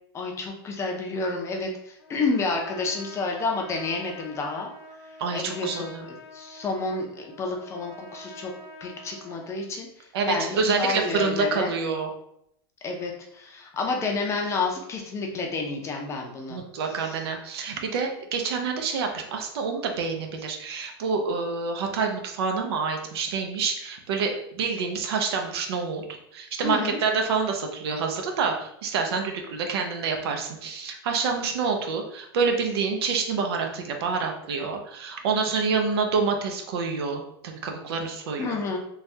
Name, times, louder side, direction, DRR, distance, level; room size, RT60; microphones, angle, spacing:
voice 1, 0.1-4.7 5.3-5.9 6.3-8.5 8.8-9.9 10.3-11.7 12.8-16.6 17.0-17.2 26.6-27.0 38.4-38.8, left 3 dB, 20° left, 1 dB, 0.5 m, -29 dB
Trumpet, 2.0-9.6, left 2 dB, 90° left, 0.9 m, -46 dB
voice 2, 5.2-6.1 10.1-12.1 16.5-26.0 26.3-38.6, right 5 dB, 75° right, 3 dB, 0.6 m, -27 dB
3.3 x 2.3 x 2.7 m, 0.75 s
supercardioid pair, 135°, 13 cm